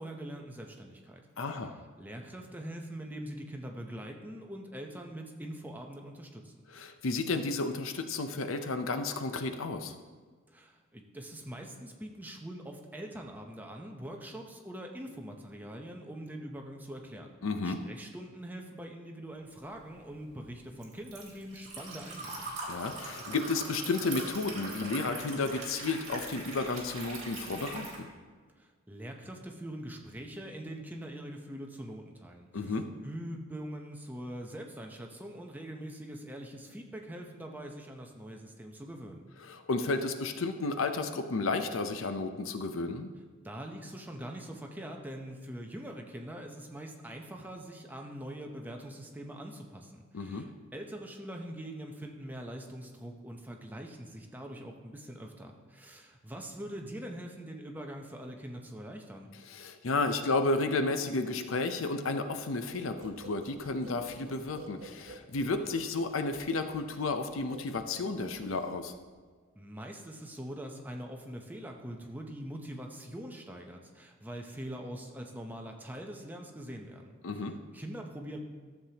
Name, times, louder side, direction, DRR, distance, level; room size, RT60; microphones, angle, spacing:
voice 1, 0.0-1.7 2.0-6.6 10.5-17.4 17.6-22.5 28.6-39.2 43.4-59.3 69.5-78.4, right 1 dB, 10° right, 2 dB, 0.7 m, -43 dB
voice 2, 1.4-1.7 6.7-10.0 17.4-17.8 22.7-28.1 32.5-32.9 39.4-43.1 50.1-50.5 59.5-68.9 77.2-77.6, left 3 dB, 75° left, 8 dB, 0.6 m, -32 dB
Liquid, 19.7-28.0, right 2 dB, 35° right, 1.9 m, -42 dB
sound 1, 62.7-69.2, right 3 dB, 70° right, 1.0 m, -51 dB
13.0 x 7.3 x 2.9 m, 1.5 s
head